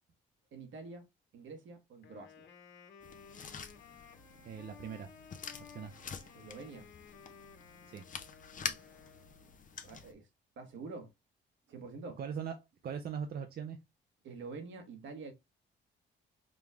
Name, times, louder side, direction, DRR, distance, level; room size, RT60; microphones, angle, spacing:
voice 1, 0.5-1.1 1.3-2.5 6.3-6.9 8.6-9.2 9.8-10.3 10.6-11.1 11.7-12.2 14.2-15.3, right 4 dB, 70° right, 1.3 m, -47 dB
Wind instrument woodwind instrument, 2.0-9.6, left 6 dB, 60° left, 1.4 m, -56 dB
sound 1, 3.0-10.1, left 6 dB, 40° left, 0.8 m, -46 dB
voice 2, 4.4-5.1 5.7-5.9 7.9-8.0 12.2-12.5 12.8-13.8, right 7 dB, 50° right, 0.6 m, -40 dB
5.2 x 2.4 x 3.3 m
cardioid pair, 90°, 20 cm